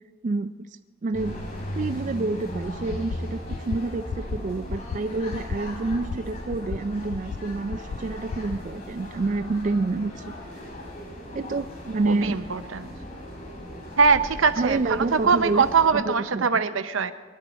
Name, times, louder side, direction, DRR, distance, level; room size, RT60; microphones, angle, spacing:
voice 1, 0.2-0.7 1.0-1.4 1.7-10.2 11.3-12.4 14.6-16.6, right 3 dB, 40° right, 9 dB, 0.3 m, -28 dB
sound 1, 1.1-15.9, equal, 45° left, 5.4 m, -38 dB
sound 2, 2.9-3.2 3.5-3.8 4.1-4.4 4.7-5.0 5.3-5.6 5.9-6.2 6.5-6.8 7.1-7.4 7.7-8.0 8.3-8.6, left 5 dB, 70° left, 0.4 m, -31 dB
voice 2, 12.1-12.9 14.0-17.1, right 5 dB, 85° right, 10 dB, 0.7 m, -22 dB
22.5 x 11.5 x 4.2 m, 1.4 s
head